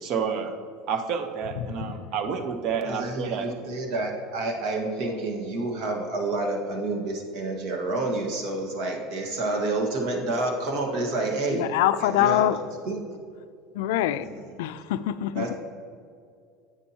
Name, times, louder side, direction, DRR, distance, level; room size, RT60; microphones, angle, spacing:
voice 1, 0.0-0.5 0.9-3.6, right 6 dB, 50° right, 0.8 m, -29 dB
voice 2, 1.6-2.1 11.5-12.6 13.7-14.3 14.6-15.5, left 12 dB, 90° left, 0.3 m, -25 dB
voice 3, 2.8-11.6 12.0-12.4 12.8-13.0 14.2-14.4 15.3-15.6, right 2 dB, 65° right, 1.5 m, -29 dB
9.7 x 8.2 x 2.9 m
cardioid pair, 145°, 0 cm